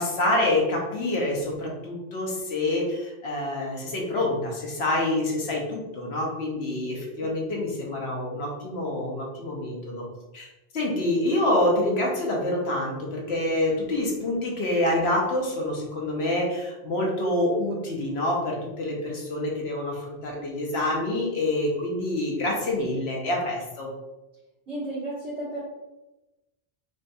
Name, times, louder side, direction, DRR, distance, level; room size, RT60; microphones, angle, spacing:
voice 1, 0.0-10.0 10.3-10.5 10.7-23.9, left 1 dB, 75° left, -2 dB, 1.1 m, -27 dB
voice 2, 24.7-25.6, right 1 dB, 85° right, -13 dB, 1.7 m, -33 dB
4.9 x 2.2 x 2.6 m, 1.0 s
omnidirectional pair, 1.1 m